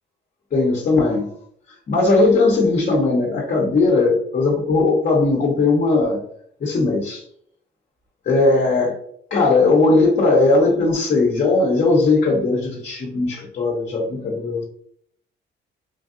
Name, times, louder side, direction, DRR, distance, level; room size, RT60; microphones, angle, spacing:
voice 1, 0.5-1.3 1.9-6.2 6.6-7.2 8.3-9.0 9.3-14.6, left 3 dB, 45° left, -2 dB, 0.9 m, -18 dB
3.3 x 2.5 x 2.5 m, 0.65 s
cardioid pair, 90°, 20 cm